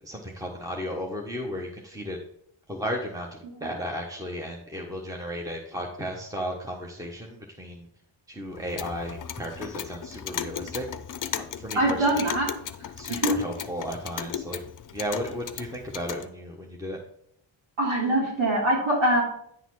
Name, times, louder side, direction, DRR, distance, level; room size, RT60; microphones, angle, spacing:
voice 1, 0.0-2.2 2.7-7.9 8.3-10.8 11.3-12.3 13.0-14.6 14.9-17.0, equal, 5° right, 0 dB, 1.0 m, -34 dB
Clock, 8.5-16.3, left 9 dB, 40° left, 0.6 m, -36 dB
voice 2, 11.8-12.5 13.1-13.3 17.8-19.2, right 1 dB, 85° right, -6 dB, 3.4 m, -23 dB
9.6 x 4.0 x 4.7 m, 0.71 s
cardioid pair, 90°, 47 cm